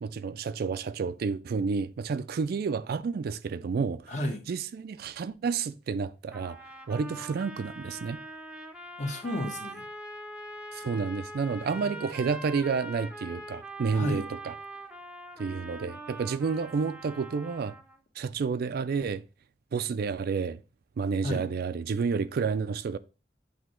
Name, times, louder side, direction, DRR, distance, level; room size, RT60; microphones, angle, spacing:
voice 1, 0.0-4.1 4.5-6.6 6.9-8.2 10.7-14.5 15.4-17.7 18.2-19.2 19.7-20.6 21.0-23.0, right 5 dB, 55° right, 0.3 m, -30 dB
voice 2, 4.1-4.4 9.0-9.8 11.8-12.2 13.9-14.3 21.2-21.5, left 1 dB, 45° left, 1.2 m, -33 dB
sound 1, 6.3-18.0, right 1 dB, 5° right, 0.6 m, -43 dB
8.1 x 2.8 x 4.3 m
head